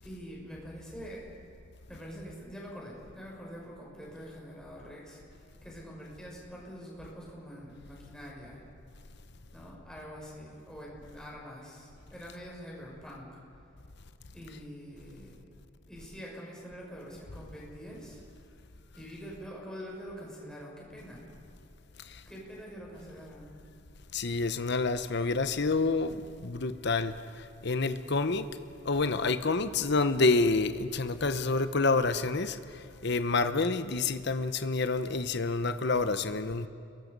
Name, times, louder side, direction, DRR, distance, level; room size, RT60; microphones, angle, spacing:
voice 1, 0.0-1.2 1.9-8.6 9.5-13.4 14.3-15.4 15.9-18.2 18.9-21.3 22.3-23.5, equal, 5° left, -4 dB, 6.2 m, -45 dB
voice 2, 24.1-27.1 27.6-28.5 28.8-32.6 33.0-36.7, left 3 dB, 60° left, 11 dB, 1.0 m, -28 dB
30.0 x 22.5 x 5.4 m, 2.5 s
head